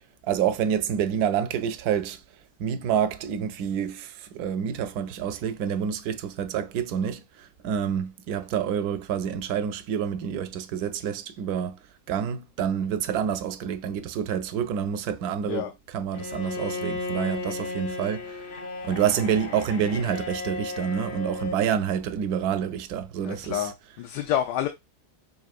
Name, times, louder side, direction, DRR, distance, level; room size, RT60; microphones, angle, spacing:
voice 1, 0.2-2.2 2.6-11.8 12.1-15.7 15.9-18.4 18.8-23.6, right 8 dB, 75° right, 1.0 m, -28 dB
Bowed string instrument, 16.1-21.7, left 3 dB, 55° left, 0.7 m, -34 dB
voice 2, 23.2-24.7, left 11 dB, 90° left, 1.2 m, -28 dB
5.8 x 2.6 x 2.4 m
omnidirectional pair, 1.7 m